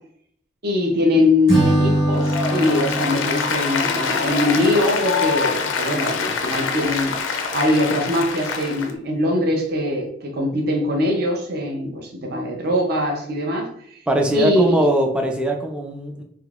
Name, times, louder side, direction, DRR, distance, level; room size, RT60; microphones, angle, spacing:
voice 1, 0.6-14.0 14.3-14.9, left 1 dB, 55° right, 1 dB, 0.6 m, -22 dB
Acoustic guitar / Strum, 1.5-4.8, right 1 dB, 20° right, 1.3 m, -23 dB
Applause, 2.1-8.9, left 5 dB, 90° left, 0.5 m, -25 dB
voice 2, 14.1-16.2, equal, 5° right, 3 dB, 0.3 m, -21 dB
3.7 x 2.7 x 2.4 m, 0.67 s
head